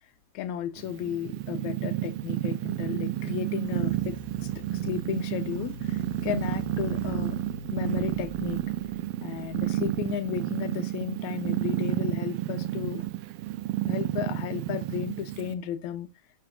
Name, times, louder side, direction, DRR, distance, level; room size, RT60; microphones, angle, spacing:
voice 1, 0.3-7.4 7.7-8.6 9.2-13.1 13.9-16.1, left 10 dB, 85° left, 2.1 m, -34 dB
Purr, 0.8-15.5, right 14 dB, 90° right, 1.3 m, -31 dB
sound 1, 3.7-10.2, left 5 dB, 65° left, 1.2 m, -45 dB
12.0 x 6.7 x 2.5 m
omnidirectional pair, 3.3 m